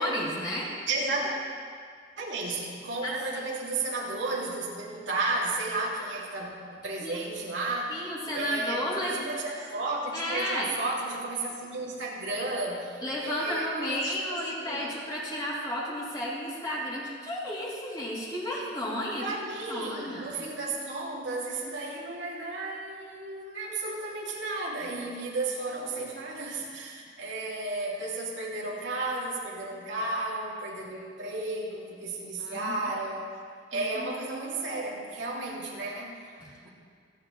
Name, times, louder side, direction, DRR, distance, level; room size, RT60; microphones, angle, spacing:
voice 1, 0.0-0.7 3.0-3.4 7.0-7.2 7.9-9.2 10.1-10.7 13.0-19.2 19.7-20.3 32.4-32.8 33.7-34.1 36.4-36.7, equal, 25° left, -6 dB, 3.2 m, -32 dB
voice 2, 0.9-1.3 2.2-8.0 8.3-14.9 19.2-33.2 33.7-36.4 36.6-36.7, right 2 dB, 80° right, -4 dB, 2.8 m, -33 dB
27.5 x 9.8 x 3.3 m, 2.1 s
head